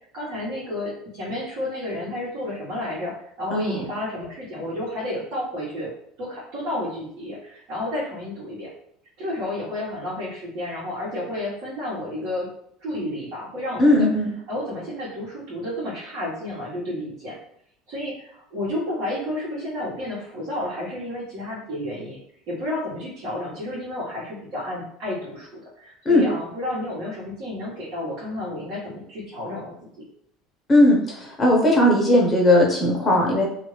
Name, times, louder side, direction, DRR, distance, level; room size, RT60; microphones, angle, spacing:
voice 1, 0.1-3.1 3.4-5.9 6.2-8.7 9.2-12.5 12.8-14.1 14.5-17.4 17.9-22.2 22.5-30.0, left 1 dB, 65° right, -9 dB, 1.4 m, -31 dB
voice 2, 3.5-3.9 13.8-14.3 26.0-26.2 30.7-33.4, left 1 dB, 20° left, -2 dB, 1.0 m, -18 dB
2.6 x 2.5 x 3.2 m, 0.69 s
supercardioid pair, 120°, 0 cm